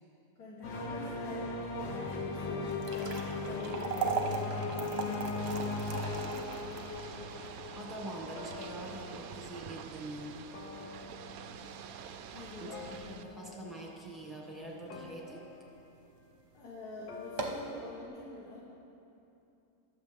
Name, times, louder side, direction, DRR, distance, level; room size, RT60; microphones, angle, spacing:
voice 1, 0.4-5.5 6.0-6.5 12.3-12.8 16.5-18.7, left 2 dB, 60° left, -5 dB, 1.8 m, -47 dB
sound 1, 0.6-10.0 10.3-11.7 12.7-13.8 14.9-15.7 17.1-18.0, left 3 dB, 85° left, 1.6 m, -39 dB
sound 2, 2.6-14.9 15.3-15.4 16.1-16.3 16.6-16.7 17.2-17.7, right 4 dB, 45° right, 1.0 m, -40 dB
Ocean / Boat Water vehicle, 5.4-13.2, right 8 dB, 75° right, 0.8 m, -47 dB
voice 2, 7.7-10.5 12.6-15.4, right 1 dB, ahead, -3 dB, 1.5 m, -44 dB
21.5 x 7.1 x 3.5 m, 2.8 s
omnidirectional pair, 2.0 m